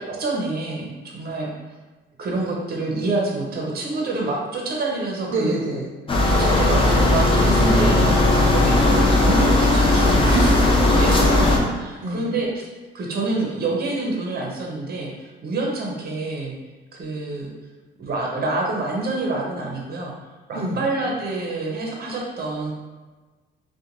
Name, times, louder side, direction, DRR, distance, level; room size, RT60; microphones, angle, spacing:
voice 1, 0.0-1.5 2.2-5.6 6.3-8.0 8.3-12.5 12.9-16.6 16.9-17.5 18.0-20.1 20.5-22.7, right 2 dB, 50° right, -1 dB, 0.7 m, -27 dB
voice 2, 5.3-5.9 7.5-8.6 10.3-10.7 11.3-11.5 12.0-12.3 20.5-20.8, right 2 dB, 85° right, -3 dB, 0.5 m, -26 dB
sound 1, 6.1-11.6, left 2 dB, 25° left, 0.5 m, -17 dB
2.5 x 2.2 x 2.9 m, 1.3 s
cardioid pair, 90°, 20 cm